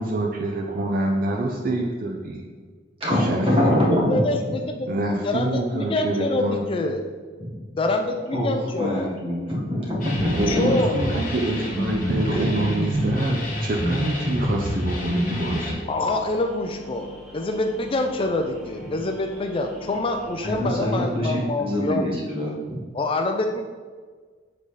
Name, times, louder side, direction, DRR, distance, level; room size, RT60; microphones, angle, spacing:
voice 1, 0.0-2.4 3.2-3.8 4.9-6.6 10.3-15.8, right 2 dB, 50° right, 1 dB, 0.5 m, -26 dB
voice 2, 3.0-4.2 7.4-7.5 8.3-8.5 8.8-10.6 12.3-12.5 20.4-22.8, equal, 30° right, -5 dB, 1.5 m, -24 dB
voice 3, 4.1-7.0 7.8-9.1 10.5-11.0 15.9-17.1 17.3-22.1 22.9-23.6, left 2 dB, 30° left, 5 dB, 0.4 m, -26 dB
sound 1, 10.0-15.7, equal, 45° left, 1.4 m, -27 dB
sound 2, 10.1-20.5, equal, ahead, 1.2 m, -42 dB
7.5 x 3.9 x 3.2 m, 1.5 s
head